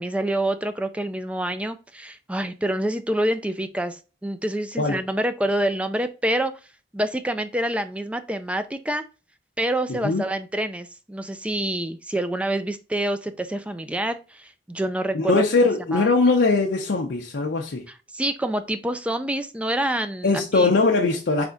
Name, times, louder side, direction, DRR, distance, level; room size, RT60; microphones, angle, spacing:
voice 1, 0.0-6.5 6.9-9.0 9.6-15.4 15.9-16.1 18.1-20.7, right 1 dB, 5° right, 0.3 m, -27 dB
voice 2, 9.9-10.2 15.1-17.8 20.2-21.4, left 3 dB, 80° left, 0.6 m, -21 dB
3.6 x 3.4 x 3.8 m
head